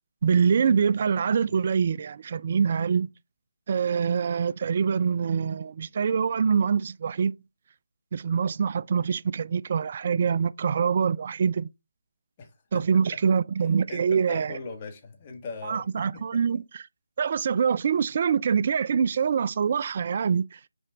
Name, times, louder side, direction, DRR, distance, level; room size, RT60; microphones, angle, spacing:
voice 1, 0.2-3.1 3.7-7.3 8.1-11.7 12.7-14.6 15.6-16.8 17.2-20.6, right 6 dB, 40° right, 0.3 m, -24 dB
voice 2, 12.4-12.8 13.9-16.4, left 4 dB, 25° left, 1.7 m, -40 dB
6.2 x 4.3 x 3.8 m
figure-of-eight pair, 150°, 0 cm